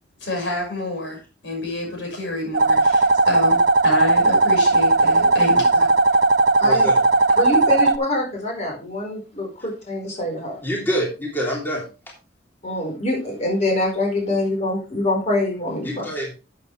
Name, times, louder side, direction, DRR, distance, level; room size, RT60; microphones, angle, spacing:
voice 1, 0.2-1.2 1.4-5.9, left 2 dB, 85° left, 1 dB, 5.8 m, -28 dB
sound 1, 2.5-8.0, right 2 dB, 60° right, 0.7 m, -17 dB
voice 2, 6.6-7.0 10.6-11.8 15.8-16.3, equal, 10° left, -2 dB, 3.2 m, -26 dB
voice 3, 7.4-10.6 12.6-16.0, left 1 dB, 40° left, 0 dB, 4.7 m, -24 dB
11.5 x 8.5 x 3.3 m, 0.32 s
head